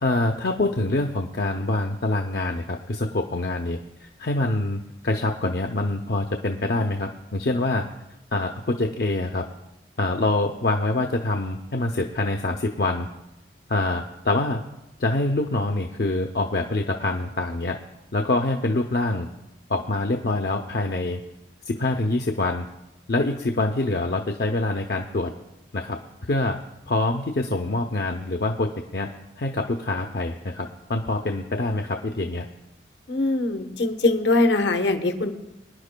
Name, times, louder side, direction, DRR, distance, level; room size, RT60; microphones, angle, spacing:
voice 1, 0.0-7.9 8.3-9.4 10.0-13.1 13.7-14.6 15.0-17.8 18.1-19.3 19.7-21.2 21.7-22.7 23.1-25.3 25.7-26.0 26.3-26.6 26.9-29.1 29.4-32.5, left 2 dB, 55° left, 4 dB, 0.6 m, -25 dB
voice 2, 33.1-35.3, left 2 dB, 70° left, 7 dB, 1.0 m, -22 dB
23.5 x 10.5 x 2.2 m, 0.95 s
head